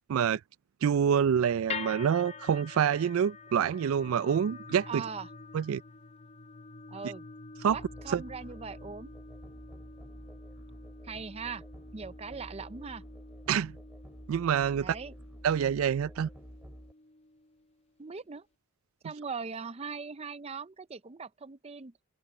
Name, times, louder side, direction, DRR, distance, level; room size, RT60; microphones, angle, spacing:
voice 1, 0.1-0.4 0.8-5.0 5.5-5.8 7.6-7.8 8.1-8.2 13.5-13.7 14.3-15.0 15.4-16.3, right 8 dB, 80° right, 0.3 m, -27 dB
sound 1, 1.7-17.9, left 4 dB, 30° left, 0.7 m, -47 dB
voice 2, 4.9-5.3 6.9-7.2 7.7-9.1 11.0-11.6 11.9-13.0 14.8-15.1 18.0-18.5 19.0-21.9, right 5 dB, 30° right, 0.5 m, -40 dB
Musical instrument, 7.7-16.9, equal, 5° right, 3.3 m, -49 dB
open air
head